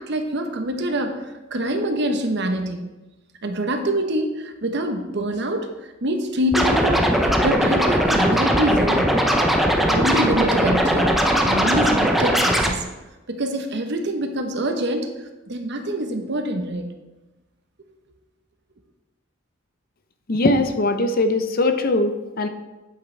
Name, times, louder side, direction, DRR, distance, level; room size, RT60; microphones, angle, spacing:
voice 1, 0.0-2.8 3.4-5.7 6.0-9.2 9.9-11.2 11.4-12.9 13.3-16.9, right 1 dB, 60° right, 6 dB, 0.9 m, -25 dB
Scratching (performance technique), 6.5-12.7, equal, ahead, 0.7 m, -19 dB
voice 2, 20.3-22.5, left 2 dB, 50° left, 8 dB, 0.6 m, -20 dB
8.7 x 7.9 x 3.3 m, 1.1 s
head